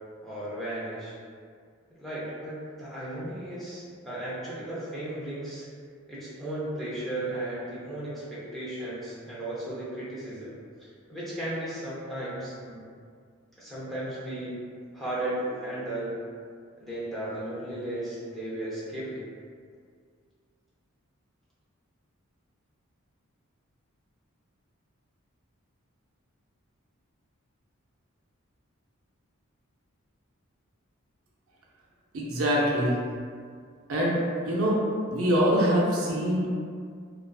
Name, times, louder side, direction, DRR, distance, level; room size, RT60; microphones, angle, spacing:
voice 1, 0.2-1.1 2.0-5.7 6.1-12.8 13.6-14.5 14.9-16.1 16.8-19.3, right 1 dB, ahead, -10 dB, 0.5 m, -35 dB
voice 2, 32.1-33.0 33.9-34.2 34.4-34.8 35.1-36.5, equal, 80° right, -4 dB, 0.5 m, -24 dB
2.4 x 2.3 x 2.3 m, 2.1 s
head